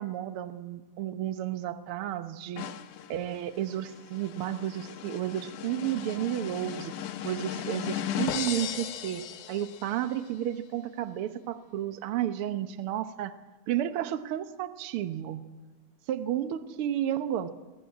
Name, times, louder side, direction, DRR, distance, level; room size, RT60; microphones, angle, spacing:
voice 1, 0.0-2.6 3.1-6.9 7.2-9.2 9.5-13.3 13.7-15.4 16.1-17.5, right 11 dB, 60° right, 10 dB, 1.6 m, -32 dB
sound 1, 2.6-10.1, left 9 dB, 85° left, 2.6 m, -37 dB
22.0 x 17.5 x 8.6 m, 1.2 s
omnidirectional pair, 3.4 m